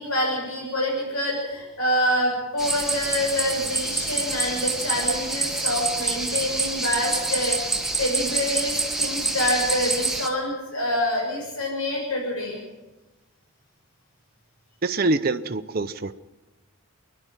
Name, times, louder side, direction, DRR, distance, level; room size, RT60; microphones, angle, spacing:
voice 1, 0.0-12.6, left 1 dB, 85° left, -1 dB, 6.3 m, -26 dB
sound 1, 2.6-10.3, right 2 dB, ahead, 1.4 m, -27 dB
voice 2, 14.8-16.1, right 2 dB, 45° right, 8 dB, 0.7 m, -24 dB
27.5 x 11.5 x 9.1 m, 1.1 s
head